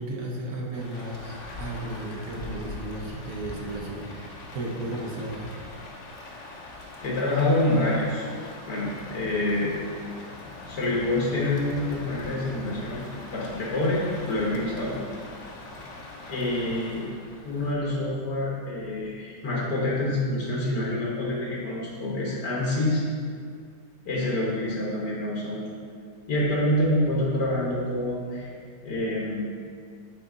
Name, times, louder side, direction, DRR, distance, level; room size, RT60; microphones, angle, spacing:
voice 1, 0.0-5.5, right 1 dB, 60° right, -2 dB, 1.3 m, -34 dB
Rain, 0.7-17.7, left 2 dB, 55° left, 1.0 m, -42 dB
voice 2, 7.0-8.3 8.7-9.7 10.7-15.0 16.3-17.1 17.4-23.0 24.1-25.6 26.3-28.5 28.8-29.5, left 1 dB, 75° left, -5 dB, 1.8 m, -27 dB
8.3 x 4.2 x 3.8 m, 2.2 s
omnidirectional pair, 1.8 m